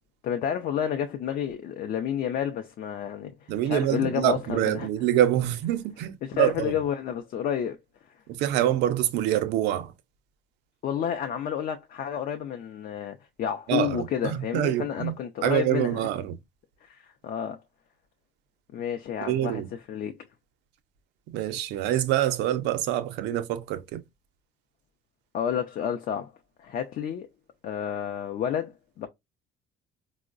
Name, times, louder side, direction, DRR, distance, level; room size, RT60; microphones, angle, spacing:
voice 1, 0.2-4.9 6.2-7.8 10.8-16.1 16.9-17.6 18.7-19.6 19.9-20.2 25.3-26.3 26.6-27.3 27.6-29.1, left 9 dB, 55° left, 0.4 m, -30 dB
voice 2, 3.5-6.5 8.3-9.9 13.7-15.1 15.4-16.3 19.3-19.7 21.3-24.0, right 12 dB, 90° right, 0.5 m, -26 dB
4.5 x 2.0 x 2.4 m
cardioid pair, 110°, 17 cm